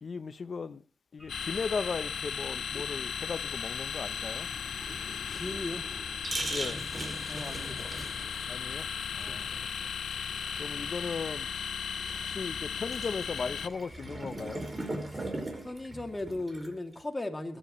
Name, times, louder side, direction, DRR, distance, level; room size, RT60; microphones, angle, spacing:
voice 1, 0.0-0.8 1.1-4.5 6.5-6.8 8.5-8.9 9.1-9.5 9.8-9.9 10.6-11.5 12.2-14.6, left 5 dB, 55° left, 0.9 m, -37 dB
sound 1, 1.2-16.4, equal, 10° right, 2.7 m, -54 dB
sound 2, 1.3-13.7, left 7 dB, 80° left, 0.6 m, -36 dB
sound 3, 4.8-17.0, right 2 dB, 30° right, 4.9 m, -41 dB
voice 2, 5.3-5.9 7.3-7.9 9.2-9.4 15.1-15.3 15.6-17.6, left 2 dB, 25° left, 2.7 m, -37 dB
23.0 x 11.5 x 3.2 m
cardioid pair, 65°, 0 cm